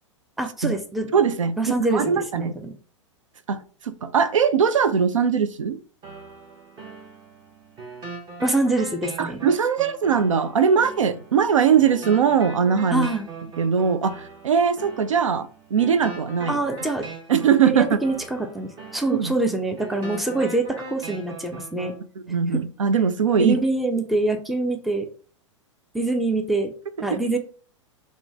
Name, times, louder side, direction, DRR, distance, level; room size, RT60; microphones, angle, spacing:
voice 1, 0.4-1.1 1.6-2.7 8.4-9.4 12.9-13.3 16.5-17.1 17.7-21.9 22.5-22.6 23.4-25.1 25.9-26.7 27.0-27.4, right 2 dB, ahead, 0.3 m, -25 dB
voice 2, 1.1-2.5 3.5-5.8 9.2-13.1 13.6-16.6 17.3-18.0 19.1-19.3 22.3-23.6 27.1-27.2, right 7 dB, 80° right, 0.4 m, -21 dB
sound 1, 6.0-22.0, right 4 dB, 30° right, 0.7 m, -40 dB
3.0 x 2.1 x 3.4 m
figure-of-eight pair, 105°, 16 cm